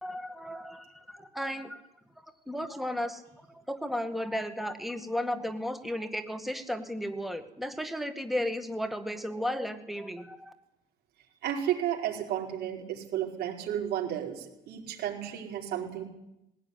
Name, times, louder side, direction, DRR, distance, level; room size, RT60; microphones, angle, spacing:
voice 1, 0.0-1.8 2.2-10.5, equal, ahead, 7 dB, 2.0 m, -34 dB
voice 2, 11.4-16.0, right 10 dB, 75° right, -1 dB, 4.8 m, -33 dB
19.5 x 17.0 x 9.8 m, 0.88 s
cardioid pair, 110°, 17 cm